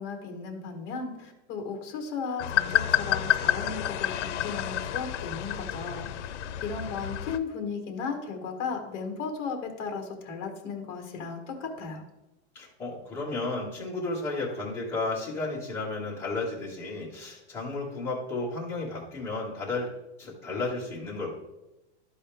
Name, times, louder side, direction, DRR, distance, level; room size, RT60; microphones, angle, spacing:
voice 1, 0.0-6.1 6.6-12.0, left 5 dB, 30° left, 4 dB, 1.3 m, -35 dB
sound 1, 2.4-7.4, left 12 dB, 75° left, 0.7 m, -29 dB
voice 2, 12.5-19.9 20.2-21.4, left 3 dB, 5° left, -8 dB, 1.7 m, -33 dB
12.5 x 4.2 x 3.4 m, 0.98 s
supercardioid pair, 180°, 35 cm